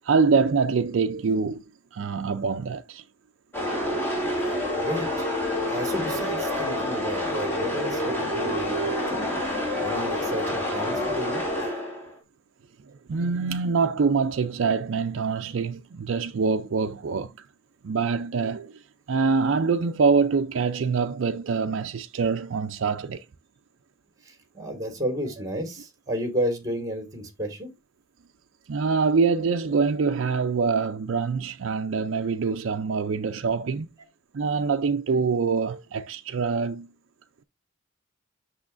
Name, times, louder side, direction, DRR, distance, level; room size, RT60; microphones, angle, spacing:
voice 1, 0.0-1.6 1.9-3.0 12.9-17.3 17.8-18.8 19.1-23.2 28.7-33.9 34.3-36.9, right 5 dB, 60° right, 0.4 m, -25 dB
sound 1, 3.5-12.2, left 1 dB, 10° left, 2.7 m, -27 dB
voice 2, 4.8-5.3 5.6-9.2 9.5-11.4 24.2-27.7, equal, 15° right, 1.9 m, -32 dB
8.4 x 6.2 x 2.5 m
head